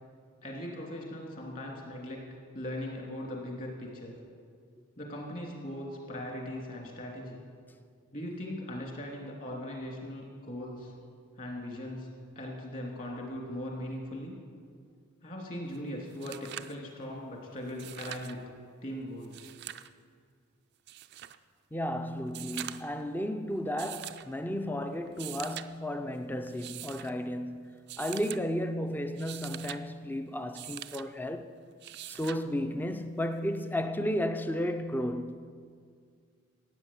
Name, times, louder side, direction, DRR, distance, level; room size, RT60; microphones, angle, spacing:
voice 1, 0.4-2.2 2.5-4.1 5.0-7.4 8.1-10.9 11.4-12.1 12.3-14.3 15.2-18.4 18.8-19.5, left 1 dB, 40° left, 2.9 m, -39 dB
sound 1, 15.7-15.8 16.1-16.8 17.7-18.4 19.2-19.9 20.9-21.4 22.3-23.0 23.8-24.3 25.1-25.7 26.5-27.1 27.9-28.4 29.0-29.8 30.5-31.1 31.8-32.4 33.8-33.9, right 12 dB, 55° right, 0.4 m, -43 dB
voice 2, 21.7-31.5 32.1-35.5, equal, 10° left, 0.5 m, -33 dB
15.5 x 9.0 x 7.5 m
head